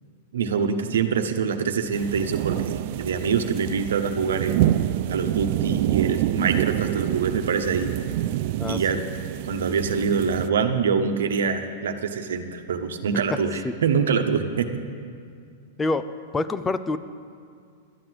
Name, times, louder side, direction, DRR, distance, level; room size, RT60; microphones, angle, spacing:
voice 1, 0.3-4.6 5.1-7.9 8.7-9.0 9.5-14.7, right 6 dB, 85° right, 6 dB, 1.1 m, -25 dB
sound 1, 1.9-10.5, right 13 dB, 55° right, 0.3 m, -27 dB
voice 2, 15.8-17.0, left 2 dB, 15° left, 12 dB, 0.5 m, -26 dB
12.5 x 9.3 x 7.7 m, 2.3 s
hypercardioid pair, 130°, 0 cm